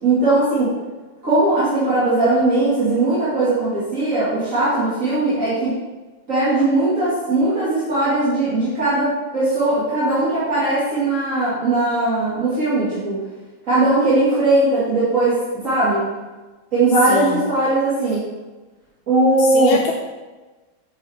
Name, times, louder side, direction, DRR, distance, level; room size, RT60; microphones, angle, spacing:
voice 1, 0.0-0.7 1.2-5.8 6.3-13.2 13.7-15.4 15.6-16.0 16.7-18.2 19.1-19.8, right 2 dB, 40° right, -12 dB, 2.7 m, -19 dB
voice 2, 17.1-17.4 19.4-19.9, left 5 dB, 85° left, 2 dB, 1.5 m, -24 dB
7.7 x 7.5 x 3.6 m, 1.2 s
omnidirectional pair, 2.2 m